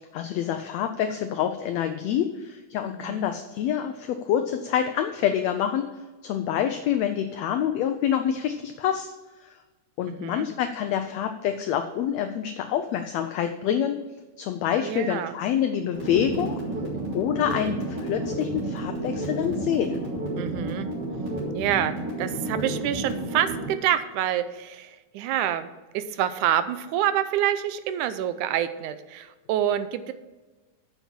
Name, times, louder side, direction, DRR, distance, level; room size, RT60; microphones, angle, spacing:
voice 1, 0.0-5.9 6.2-9.1 9.4-9.5 10.0-14.0 14.4-16.6 17.1-20.0, left 9 dB, 80° left, 7 dB, 1.5 m, -27 dB
voice 2, 2.9-3.3 10.1-10.5 14.8-15.3 20.4-20.9 21.5-21.9 22.2-30.1, right 11 dB, 80° right, 12 dB, 2.0 m, -27 dB
sound 1, 15.9-23.7, right 2 dB, 30° right, 3.8 m, -31 dB
7.2 x 7.0 x 7.2 m, 1.2 s
omnidirectional pair, 3.6 m